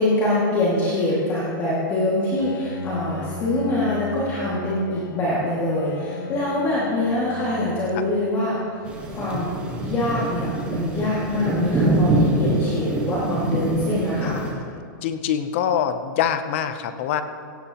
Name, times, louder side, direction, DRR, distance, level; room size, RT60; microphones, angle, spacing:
voice 1, 0.0-8.6 9.1-9.5 9.8-14.4, left 1 dB, 20° left, -7 dB, 2.1 m, -24 dB
Bowed string instrument, 2.4-9.5, left 4 dB, 80° left, 1.1 m, -38 dB
sound 1, 8.8-14.5, right 1 dB, 10° right, 1.3 m, -24 dB
voice 2, 14.2-17.2, left 9 dB, 35° left, 10 dB, 0.6 m, -25 dB
16.5 x 16.0 x 2.9 m, 2.3 s
supercardioid pair, 175°, 11 cm